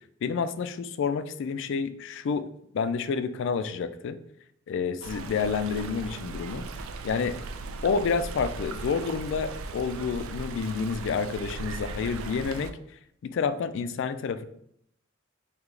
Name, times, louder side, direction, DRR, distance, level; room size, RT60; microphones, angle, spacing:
voice 1, 0.2-2.5 2.7-4.2 4.7-6.7 7.0-7.4 7.8-12.8 13.2-14.5, left 5 dB, 60° left, 12 dB, 0.3 m, -29 dB
Stream, 5.0-12.7, right 3 dB, 75° right, 0.4 m, -38 dB
3.2 x 2.8 x 3.7 m, 0.72 s
head